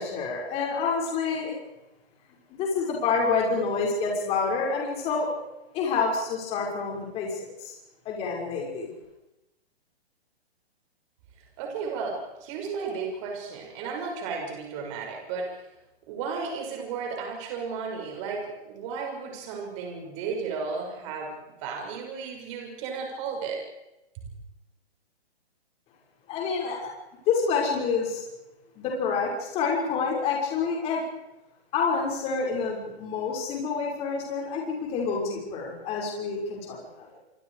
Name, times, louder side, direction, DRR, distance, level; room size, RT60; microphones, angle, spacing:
voice 1, 0.0-1.5 2.6-5.3 5.7-7.3 7.6-7.7 8.1-8.9 26.3-26.9 27.3-28.2 28.8-31.0 31.7-37.2, left 5 dB, 20° left, -1 dB, 5.9 m, -28 dB
voice 2, 11.6-15.5 16.1-23.6 24.2-24.3, right 5 dB, 30° right, 1 dB, 6.4 m, -34 dB
27.0 x 25.0 x 5.0 m, 0.93 s
hypercardioid pair, 160°, 32 cm